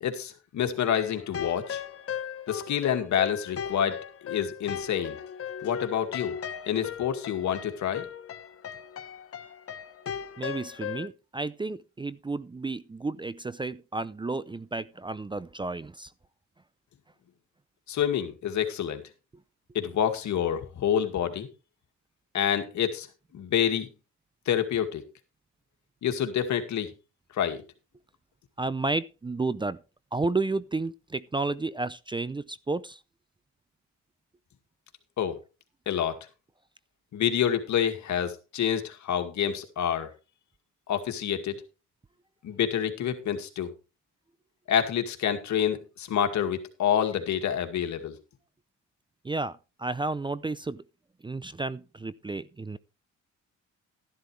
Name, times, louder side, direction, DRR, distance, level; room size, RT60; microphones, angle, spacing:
voice 1, 0.0-1.8 2.5-4.0 4.2-5.2 5.6-6.4 6.7-8.1 17.9-19.0 19.7-21.5 22.3-23.1 23.3-23.9 24.5-25.0 26.0-26.9 27.3-27.6 35.2-35.4 35.9-36.2 37.1-40.1 40.9-41.6 42.4-43.7 44.7-48.2, left 9 dB, 70° left, 2.2 m, -27 dB
sound 1, 0.9-11.1, left 8 dB, 50° left, 1.1 m, -37 dB
voice 2, 10.4-16.1 28.6-29.8 30.1-33.0 49.2-50.8 51.2-52.8, right 3 dB, 15° right, 0.5 m, -32 dB
12.5 x 11.5 x 3.3 m
cardioid pair, 90°, 30 cm